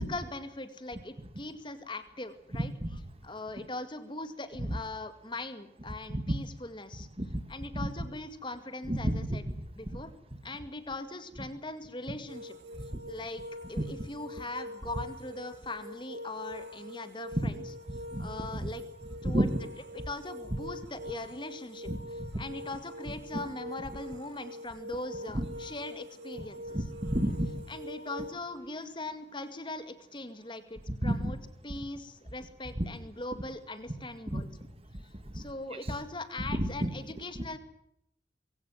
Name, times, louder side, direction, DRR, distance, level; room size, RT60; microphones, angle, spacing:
voice 1, 0.0-2.7 3.2-7.1 7.5-9.4 9.8-10.1 10.4-12.6 13.1-13.4 13.7-17.6 18.2-18.8 19.2-19.5 19.9-21.9 22.4-26.8 27.7-31.4 31.6-34.5 35.3-37.6, left 2 dB, 25° left, 10 dB, 2.1 m, -40 dB
voice 2, 8.9-9.4 9.9-10.0 13.8-13.9 17.3-17.5 17.9-18.7 19.2-19.5 21.9-22.0 22.3-22.4 23.3-23.4 25.3-25.5 26.7-27.5 31.0-31.4 32.8-32.9 34.3-34.4 35.3-35.4 36.5-36.9, right 1 dB, 30° right, 11 dB, 2.1 m, -30 dB
sound 1, 12.3-28.3, equal, 65° right, 2.5 m, -44 dB
23.0 x 16.5 x 9.3 m, 0.77 s
head